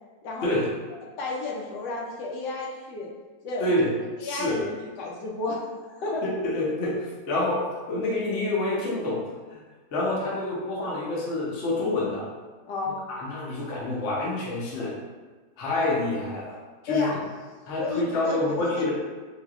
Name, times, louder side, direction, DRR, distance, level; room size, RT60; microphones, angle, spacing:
voice 1, 0.2-0.7 1.0-3.1 3.4-3.9 4.2-5.6 5.9-6.2 12.7-13.0 16.9-17.2 17.8-18.9, left 3 dB, 80° left, -3 dB, 1.2 m, -32 dB
voice 2, 3.6-3.9 4.2-4.6 6.2-9.2 9.5-9.6 9.9-12.2 13.1-14.9 15.6-16.6 16.8-17.1 17.7-18.9, left 2 dB, 55° left, -5 dB, 0.9 m, -27 dB
3.3 x 2.8 x 2.3 m, 1.3 s
omnidirectional pair, 1.8 m